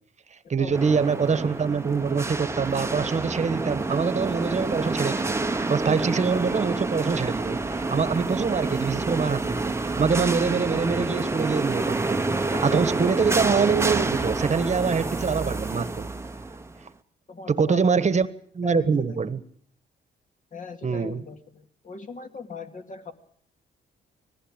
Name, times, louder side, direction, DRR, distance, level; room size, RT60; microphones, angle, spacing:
voice 1, 0.5-5.4 5.7-16.1 17.5-18.3 18.5-19.4 20.8-21.2, right 5 dB, 35° right, 1.4 m, -25 dB
sound 1, 0.7-16.8, right 3 dB, 15° right, 1.0 m, -28 dB
voice 2, 17.3-18.0 18.6-19.2 20.5-23.1, left 5 dB, 40° left, 2.3 m, -40 dB
20.0 x 15.0 x 9.0 m
cardioid pair, 90°, 20 cm